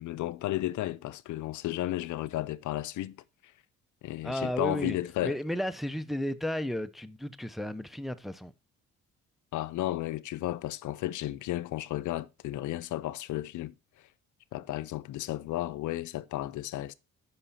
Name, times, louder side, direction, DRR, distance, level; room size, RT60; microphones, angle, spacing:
voice 1, 0.0-3.2 4.0-5.4 9.5-13.7 14.5-16.9, left 15 dB, 75° left, 0.6 m, -33 dB
voice 2, 4.2-5.0 5.2-8.5, left 1 dB, ahead, 0.6 m, -33 dB
8.8 x 5.7 x 4.1 m
cardioid pair, 90°, 30 cm